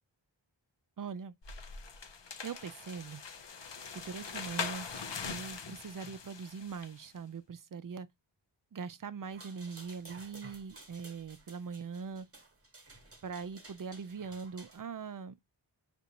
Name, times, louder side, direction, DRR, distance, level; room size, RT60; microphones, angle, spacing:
voice 1, 1.0-1.3 2.4-3.2 3.9-4.9 5.3-8.1 8.7-12.3 13.2-15.5, right 5 dB, 45° right, 0.5 m, -42 dB
sound 1, 1.4-7.0, left 5 dB, 65° left, 0.7 m, -42 dB
sound 2, 9.2-14.8, right 2 dB, 30° right, 1.2 m, -54 dB
5.0 x 2.6 x 2.9 m
wide cardioid pair, 45°, 48 cm